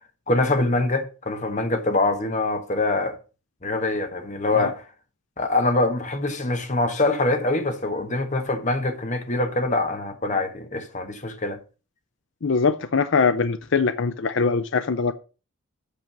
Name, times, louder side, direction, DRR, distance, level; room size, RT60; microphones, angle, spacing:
voice 1, 0.3-3.2 3.6-4.8 5.4-11.6, left 2 dB, 35° left, 1.3 m, -24 dB
voice 2, 12.4-15.1, left 4 dB, 55° left, 0.5 m, -22 dB
8.5 x 5.3 x 6.0 m
head